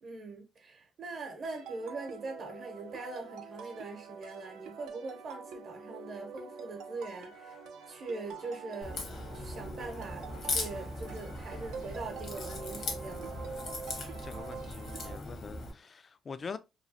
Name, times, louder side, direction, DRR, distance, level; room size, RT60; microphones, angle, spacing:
voice 1, 0.0-7.6 7.9-9.0 9.3-13.4, right 3 dB, 60° right, 0.8 m, -42 dB
sound 1, 1.4-15.2, right 5 dB, 85° right, 0.4 m, -46 dB
sound 2, 7.3-15.3, left 2 dB, 80° left, 1.5 m, -57 dB
Crack, 8.8-15.7, left 2 dB, 65° left, 1.0 m, -39 dB
voice 2, 14.2-16.6, left 5 dB, 40° left, 0.3 m, -44 dB
3.0 x 2.3 x 2.5 m
cardioid pair, 90°, 0 cm